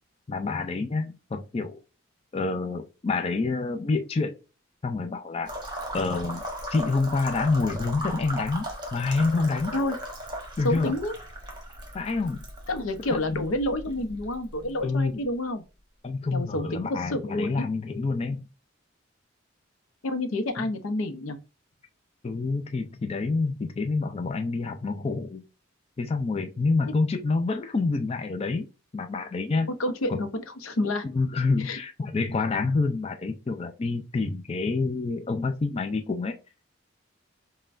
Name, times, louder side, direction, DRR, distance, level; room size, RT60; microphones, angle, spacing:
voice 1, 0.3-1.8 2.3-4.4 4.8-5.5 5.9-6.4 6.7-9.7 10.6-10.9 11.9-12.4 13.1-13.4 14.8-15.2 16.0-18.4 20.6-20.7 22.2-25.4 26.0-28.7 28.9-29.7 30.1-30.2 31.1-36.4, left 3 dB, 30° left, 0.4 m, -27 dB
sound 1, 5.5-15.2, equal, 20° right, 0.9 m, -38 dB
voice 2, 10.6-11.1 12.7-15.6 16.3-17.6 20.0-21.4 29.7-31.0 31.6-31.8, left 1 dB, 85° left, 0.7 m, -29 dB
5.5 x 2.2 x 2.5 m
head